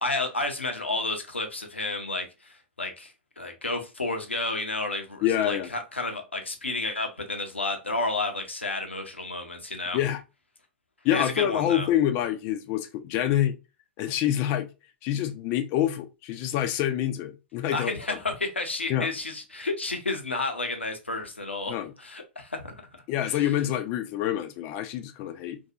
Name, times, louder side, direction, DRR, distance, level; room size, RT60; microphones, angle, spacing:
voice 1, 0.0-10.0 11.1-11.9 17.7-22.8, left 2 dB, 85° left, 0.6 m, -31 dB
voice 2, 5.2-5.7 9.9-10.2 11.0-13.5 14.0-14.7 15.0-18.2 18.9-19.1 21.7-21.9 23.1-25.6, left 11 dB, 35° left, 0.4 m, -26 dB
2.6 x 2.3 x 2.6 m
figure-of-eight pair, 105°, 6 cm